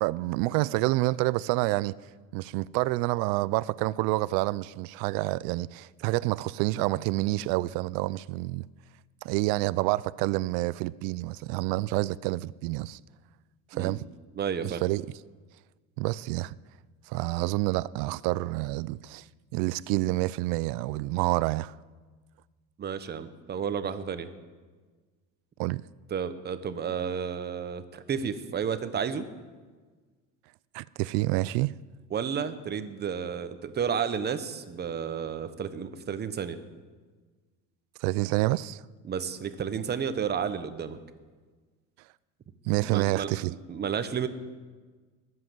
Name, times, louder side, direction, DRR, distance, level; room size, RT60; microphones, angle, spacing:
voice 1, 0.0-2.0 2.3-8.6 9.2-13.0 13.7-14.1 14.6-15.1 16.0-16.5 17.1-19.2 19.5-21.7 25.6-25.8 30.7-31.7 38.0-38.8 42.7-43.5, right 19 dB, 75° right, 0.5 m, -28 dB
voice 2, 14.3-14.8 22.8-24.3 26.1-29.3 32.1-36.6 39.0-41.0 42.9-43.3 43.7-44.3, right 7 dB, 30° right, 1.0 m, -31 dB
20.5 x 7.7 x 7.7 m
cardioid pair, 130°, 35 cm